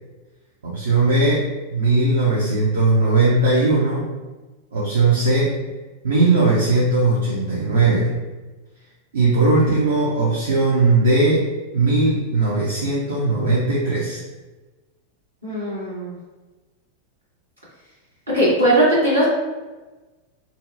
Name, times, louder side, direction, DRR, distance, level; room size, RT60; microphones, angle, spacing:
voice 1, 0.6-4.1 4.7-5.5 6.0-8.1 9.1-11.5 11.7-14.2, right 3 dB, 65° right, -7 dB, 0.5 m, -18 dB
voice 2, 15.4-16.1 18.3-19.2, right 1 dB, 85° right, -9 dB, 1.3 m, -18 dB
2.6 x 2.1 x 2.5 m, 1.2 s
figure-of-eight pair, 90°, 0 cm